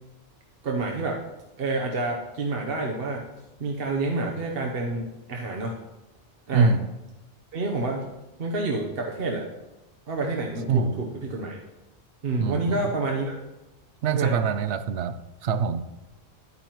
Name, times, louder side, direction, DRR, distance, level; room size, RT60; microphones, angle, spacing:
voice 1, 0.6-1.2 1.6-3.2 3.6-5.8 6.5-6.7 7.5-8.0 8.4-9.4 10.1-11.6 12.2-13.4 14.1-14.5, right 2 dB, 60° right, 0 dB, 1.1 m, -28 dB
voice 2, 6.5-6.9 10.7-11.0 12.4-12.6 14.0-15.1 15.4-15.8, right 5 dB, 80° right, 12 dB, 0.9 m, -23 dB
10.5 x 9.5 x 3.0 m, 0.99 s
omnidirectional pair, 1.1 m